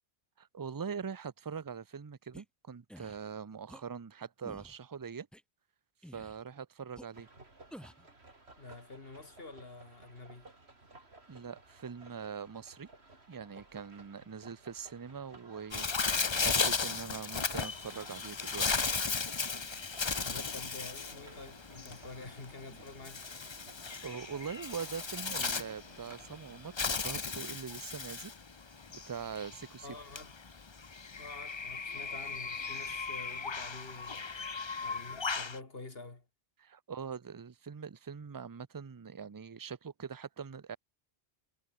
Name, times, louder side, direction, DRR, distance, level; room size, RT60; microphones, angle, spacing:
voice 1, 0.4-5.3 6.1-7.3 11.3-12.9 13.3-18.7 24.0-28.3 28.7-28.8 29.0-30.0 36.6-40.8, right 6 dB, 30° right, 0.4 m, -43 dB
sound 1, 2.3-2.4 2.9-3.2 3.7-3.8 4.4-4.8 5.3-5.4 6.0-6.4 6.9-7.1 7.7-8.1, equal, ahead, 3.0 m, -50 dB
sound 2, 7.1-26.8, right 2 dB, 70° right, 3.9 m, -57 dB
voice 2, 8.6-10.5 20.2-23.3 29.8-30.3 31.2-34.3 34.8-36.2, left 3 dB, 60° left, 3.0 m, -48 dB
Bird, 15.7-35.6, left 4 dB, 30° left, 0.7 m, -36 dB
omnidirectional pair, 1.1 m